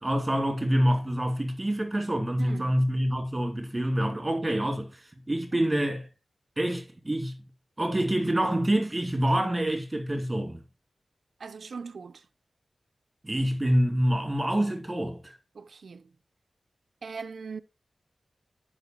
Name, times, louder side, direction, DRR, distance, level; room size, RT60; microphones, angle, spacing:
voice 1, 0.0-6.1 6.6-7.4 7.8-10.6 13.2-15.3, right 1 dB, 20° right, 2.7 m, -26 dB
voice 2, 2.4-2.8 5.5-5.6 7.8-7.9 11.4-12.2 15.5-16.1 17.0-17.6, right 5 dB, 75° right, 0.7 m, -40 dB
10.5 x 5.5 x 4.5 m
wide cardioid pair, 110°, 0 cm